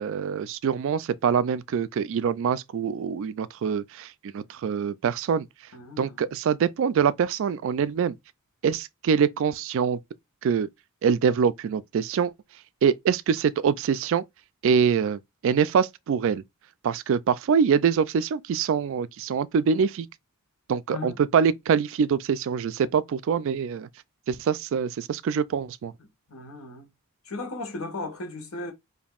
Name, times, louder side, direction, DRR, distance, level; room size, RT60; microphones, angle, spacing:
voice 1, 0.0-5.5 6.0-8.2 8.6-10.0 10.4-10.7 11.0-12.3 12.8-14.2 14.6-16.4 16.8-20.1 20.7-23.9 24.3-25.9, right 7 dB, 60° right, 0.3 m, -24 dB
voice 2, 5.7-6.2 20.9-21.2 26.0-26.9 27.2-28.7, left 2 dB, 70° left, 1.3 m, -36 dB
5.2 x 2.6 x 2.4 m
head